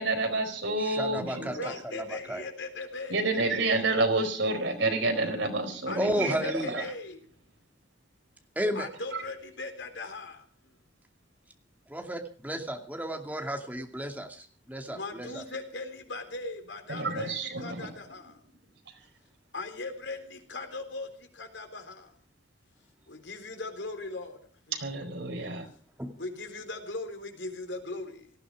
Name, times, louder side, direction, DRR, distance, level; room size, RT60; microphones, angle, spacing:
voice 1, 0.0-1.7 3.1-6.8 9.1-9.2 16.9-17.9 24.7-25.7, right 2 dB, 75° right, 6 dB, 4.5 m, -29 dB
voice 2, 0.8-2.4 6.0-6.9 8.6-8.9 11.9-15.4 26.0-26.1, equal, 10° right, 4 dB, 2.5 m, -33 dB
voice 3, 1.3-3.3 5.9-7.2 8.8-10.5 14.9-18.4 19.5-22.1 23.1-24.4 24.7-24.9 26.2-28.3, left 3 dB, 75° left, 6 dB, 3.7 m, -39 dB
18.5 x 15.0 x 4.9 m, 0.41 s
head